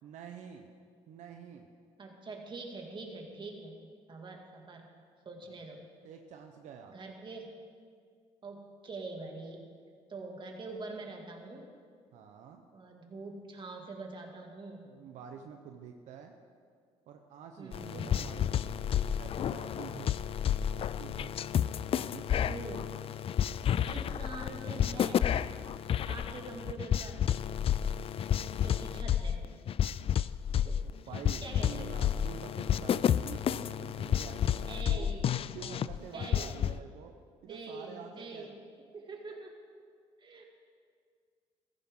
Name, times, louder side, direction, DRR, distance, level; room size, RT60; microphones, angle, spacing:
voice 1, 0.0-0.7 1.1-1.7 5.4-5.6 6.0-7.0 12.1-12.6 14.8-16.3 17.1-20.2 20.7-21.4 21.9-22.7 23.8-24.2 31.1-35.1 35.5-37.1 37.4-38.6, right 7 dB, 85° right, 4 dB, 0.9 m, -48 dB
voice 2, 2.0-3.8 4.1-4.9 5.2-5.8 6.9-7.6 8.4-9.6 10.1-11.7 12.7-14.9 17.6-18.2 22.4-22.9 23.8-25.3 26.1-27.3 28.6-29.5 30.6-30.8 31.4-32.0 34.7-35.4 36.1-36.5 37.5-38.6 38.9-39.5 40.2-40.5, right 3 dB, 40° right, 1 dB, 2.3 m, -44 dB
sound 1, 17.7-36.8, left 9 dB, 50° left, 0.4 m, -31 dB
15.0 x 14.5 x 3.8 m, 2.1 s
cardioid pair, 80°, 12 cm